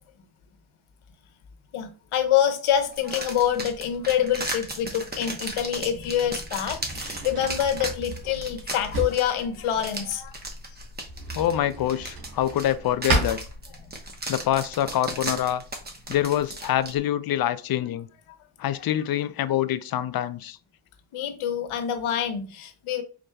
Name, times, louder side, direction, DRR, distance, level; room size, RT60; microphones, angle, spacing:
voice 1, 1.7-10.4 21.1-23.0, left 9 dB, 80° left, 0.9 m, -26 dB
sound 1, 2.9-16.9, right 2 dB, 20° right, 0.9 m, -36 dB
Drawer open or close, 5.5-14.2, right 2 dB, 85° right, 2.1 m, -34 dB
voice 2, 11.3-13.4 14.3-15.6 16.1-18.1 18.6-20.6, left 12 dB, 50° left, 0.5 m, -25 dB
5.1 x 4.0 x 2.2 m
cardioid pair, 95°, 49 cm